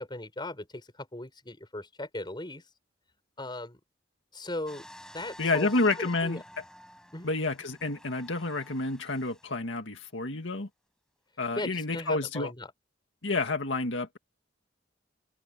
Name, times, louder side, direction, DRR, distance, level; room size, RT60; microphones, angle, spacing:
voice 1, 0.0-2.6 3.4-3.8 4.3-4.9 5.1-5.7 5.9-6.4 7.1-7.3 11.5-12.7, left 1 dB, 25° left, 6.9 m, -38 dB
sound 1, 4.7-9.7 10.3-10.4, left 1 dB, 5° left, 5.9 m, -51 dB
voice 2, 5.4-6.4 7.2-10.7 11.4-12.5 13.2-14.2, left 3 dB, 75° left, 2.0 m, -29 dB
head